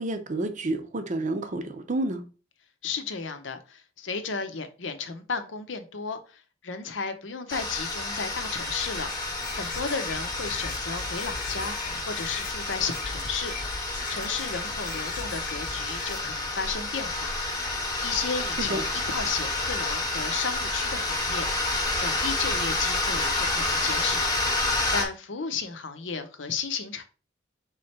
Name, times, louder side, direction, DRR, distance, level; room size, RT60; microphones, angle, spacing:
voice 1, 0.0-2.2 18.6-18.8, right 2 dB, 40° right, 0.6 m, -29 dB
voice 2, 2.8-9.1 9.5-11.8 12.1-13.5 14.1-17.3 18.0-21.5 22.0-24.3 24.9-27.0, left 5 dB, 80° left, 0.7 m, -33 dB
sound 1, 7.5-25.1, left 2 dB, 20° left, 0.9 m, -29 dB
sound 2, 8.5-16.2, left 4 dB, 45° left, 0.5 m, -40 dB
3.8 x 3.2 x 4.2 m
head